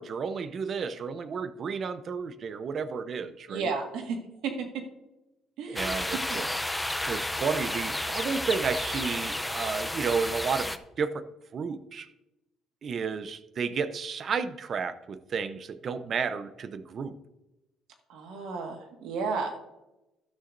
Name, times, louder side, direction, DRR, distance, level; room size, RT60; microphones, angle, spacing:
voice 1, 0.0-3.7 5.7-6.5 7.1-11.2 11.5-12.1 12.8-17.2, right 5 dB, 45° right, 12 dB, 0.7 m, -32 dB
voice 2, 3.5-4.2 4.4-4.7 5.6-5.9 18.1-19.6, right 4 dB, 85° right, 3 dB, 1.7 m, -32 dB
sound 1, 5.8-10.8, left 1 dB, 5° left, 0.6 m, -32 dB
12.5 x 11.5 x 2.6 m, 0.98 s
cardioid pair, 105°, 0 cm